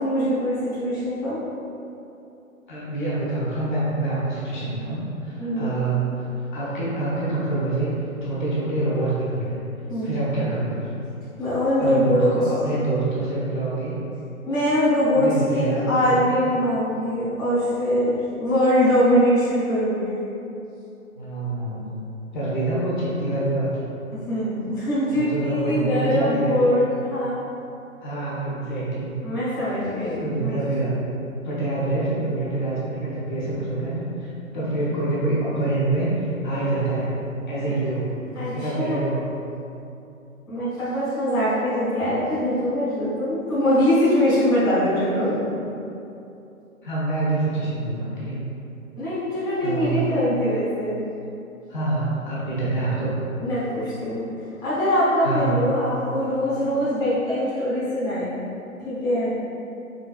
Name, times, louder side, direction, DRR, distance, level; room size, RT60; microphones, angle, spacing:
voice 1, 0.0-1.4 5.4-5.7 9.9-10.1 11.4-12.3 14.4-20.2 24.1-27.4 29.2-30.6 38.3-39.0 40.5-45.3 49.0-51.0 53.4-54.3 54.6-58.3 58.8-59.3, equal, 10° left, -13 dB, 0.8 m, -22 dB
voice 2, 2.7-6.3 6.5-7.9 8.2-9.6 10.0-10.9 11.8-14.0 15.1-16.2 21.2-22.0 22.3-23.8 25.0-26.8 28.0-29.2 30.2-31.0 31.4-37.2 37.5-38.2 38.5-39.4 45.0-45.3 45.7-45.8 46.8-48.4 49.6-50.0 51.7-53.1 55.2-55.6, right 2 dB, 35° left, -9 dB, 0.9 m, -26 dB
4.0 x 3.6 x 2.3 m, 2.8 s
figure-of-eight pair, 125°, 42 cm